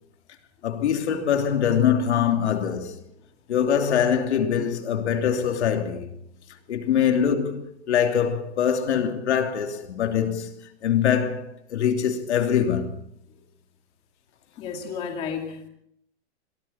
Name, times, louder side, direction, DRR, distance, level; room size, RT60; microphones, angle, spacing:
voice 1, 0.6-2.9 3.5-6.1 6.7-10.5 10.8-13.0, left 8 dB, 70° left, 3.2 m, -23 dB
voice 2, 14.6-15.7, left 6 dB, 15° left, 2.5 m, -32 dB
28.0 x 23.0 x 4.4 m
supercardioid pair, 180°, 35 cm